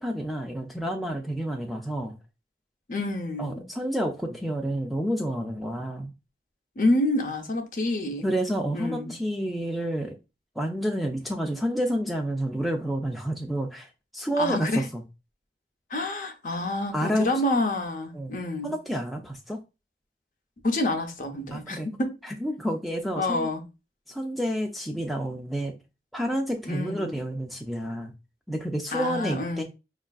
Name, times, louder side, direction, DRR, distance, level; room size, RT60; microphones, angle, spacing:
voice 1, 0.0-2.2 3.4-6.1 8.2-10.1 10.6-15.0 16.9-17.3 18.1-18.4 18.6-19.6 21.5-21.9 22.2-23.5 24.1-25.7 26.1-28.1 28.5-29.6, equal, ahead, 0.3 m, -29 dB
voice 2, 2.9-3.7 6.8-8.2 8.7-9.1 14.4-14.8 15.9-18.7 20.6-22.1 23.1-23.7 26.7-27.2 28.9-29.6, left 1 dB, 45° left, 0.6 m, -28 dB
5.2 x 2.4 x 2.3 m
head